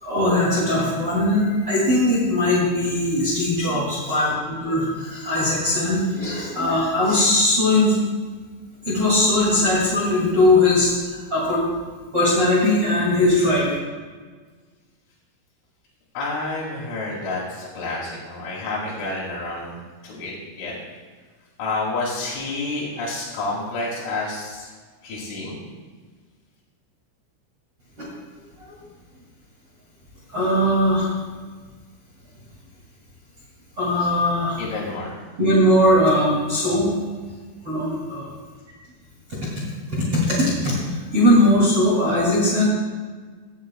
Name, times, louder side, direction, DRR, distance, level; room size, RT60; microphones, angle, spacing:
voice 1, 0.0-8.0 8.8-11.6 12.1-13.7 28.0-28.1 28.7-28.8 30.3-31.1 33.8-34.6 35.4-36.9 37.6-38.3 39.4-39.6 39.9-42.7, left 1 dB, 35° right, -7 dB, 2.6 m, -20 dB
voice 2, 16.1-19.8 20.0-20.7 21.6-24.7 25.0-25.6 34.6-35.1, left 2 dB, 75° left, -8 dB, 4.9 m, -29 dB
17.0 x 13.5 x 2.3 m, 1.5 s
omnidirectional pair, 5.9 m